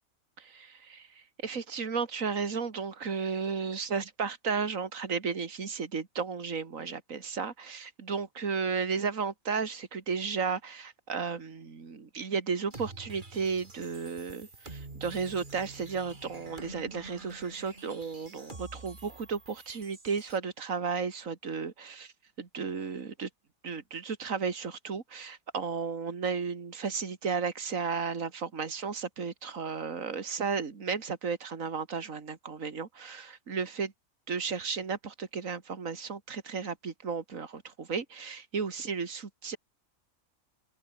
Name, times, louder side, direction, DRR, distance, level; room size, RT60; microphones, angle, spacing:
voice 1, 0.4-22.1 22.4-23.3 23.6-33.9 34.3-39.6, right 5 dB, 70° right, 2.5 m, -34 dB
sound 1, 12.7-20.4, right 2 dB, 35° right, 2.8 m, -47 dB
open air
omnidirectional pair, 1.4 m